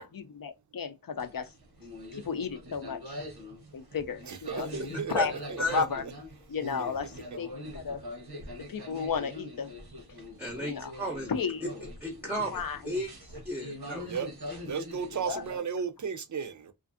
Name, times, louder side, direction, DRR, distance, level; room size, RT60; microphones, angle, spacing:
voice 1, 0.0-1.5 2.1-3.2 3.7-5.3 5.7-6.0 6.5-8.0 8.6-9.7 10.6-10.9 11.3-11.6 12.4-12.9 15.2-15.4, left 6 dB, 65° left, 0.5 m, -34 dB
sound 1, 1.2-15.6, left 1 dB, 85° right, 0.8 m, -43 dB
voice 2, 4.3-5.8 14.1-14.3 14.6-16.7, right 6 dB, 50° right, 0.4 m, -34 dB
voice 3, 10.4-11.3 12.0-14.1, equal, 5° right, 0.6 m, -34 dB
2.5 x 2.4 x 2.4 m
wide cardioid pair, 40°, 38 cm